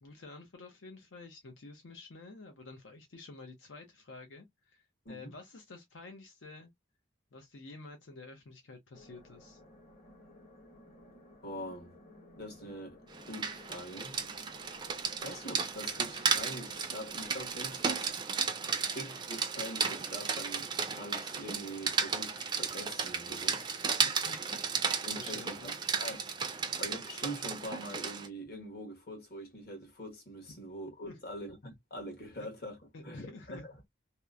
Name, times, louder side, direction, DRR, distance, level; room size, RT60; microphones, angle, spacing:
voice 1, 0.0-6.7 7.3-9.6 24.0-24.6 25.2-25.8 31.0-31.2 32.9-33.7, left 3 dB, 85° left, 0.6 m, -50 dB
sound 1, 8.9-18.1, left 1 dB, 30° left, 0.8 m, -56 dB
voice 2, 11.4-11.9 12.4-13.0 13.3-14.2 15.1-18.1 18.7-23.6 25.1-25.7 26.0-26.2 26.8-32.8 33.0-33.8, equal, 55° left, 1.1 m, -44 dB
Rain, 13.1-28.3, right 6 dB, 25° right, 0.3 m, -34 dB
2.9 x 2.1 x 2.3 m
head